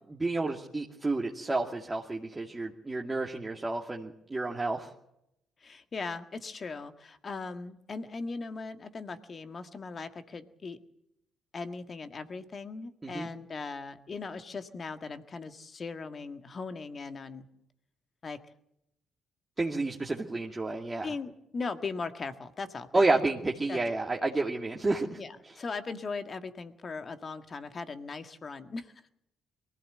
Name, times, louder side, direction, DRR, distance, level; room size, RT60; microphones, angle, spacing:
voice 1, 0.1-4.9 13.0-13.3 19.6-21.1 22.9-25.2, right 2 dB, 20° right, -1 dB, 2.4 m, -30 dB
voice 2, 5.6-10.8 11.5-17.5 18.2-18.4 21.0-23.2 23.7-23.8 25.2-28.9, left 4 dB, 40° left, 8 dB, 1.8 m, -39 dB
23.0 x 15.5 x 7.8 m, 0.80 s
hypercardioid pair, 50°, 0 cm